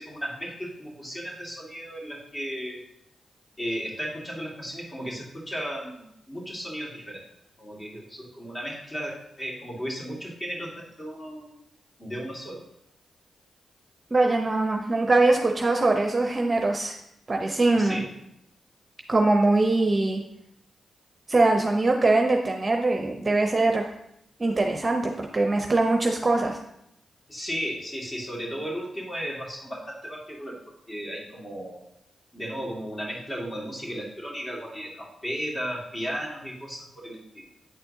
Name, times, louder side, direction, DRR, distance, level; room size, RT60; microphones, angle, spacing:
voice 1, 0.0-2.8 3.6-7.3 7.6-11.5 12.0-12.7 17.8-18.1 27.3-31.8 32.3-37.5, equal, 30° left, -3 dB, 2.1 m, -35 dB
voice 2, 14.1-17.0 17.3-18.0 19.1-20.2 21.3-23.8 24.4-26.6, right 2 dB, 35° right, 3 dB, 0.6 m, -22 dB
8.9 x 4.4 x 2.7 m, 0.79 s
supercardioid pair, 50°, 0 cm